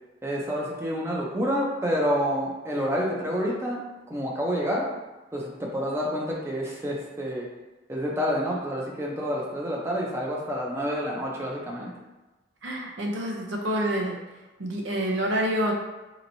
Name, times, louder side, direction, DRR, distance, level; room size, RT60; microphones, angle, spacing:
voice 1, 0.2-4.9 5.3-7.5 7.9-11.9, equal, 15° right, -3 dB, 0.5 m, -28 dB
voice 2, 12.6-14.2 14.6-15.7, right 1 dB, 75° right, 0 dB, 0.7 m, -27 dB
4.2 x 2.9 x 2.7 m, 1.1 s
head